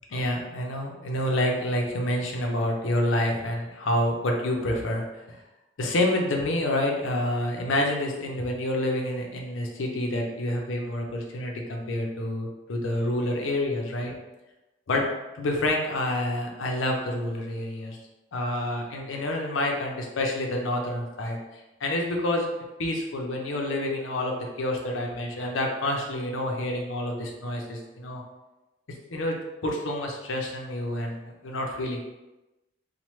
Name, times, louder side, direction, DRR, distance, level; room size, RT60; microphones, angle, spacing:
voice 1, 0.1-5.4 5.8-14.1 14.9-15.1 15.3-18.0 18.3-22.5 22.8-28.2 29.1-29.4 29.6-32.0, left 1 dB, 90° left, 1 dB, 0.6 m, -28 dB
3.1 x 2.1 x 3.0 m, 1.0 s
head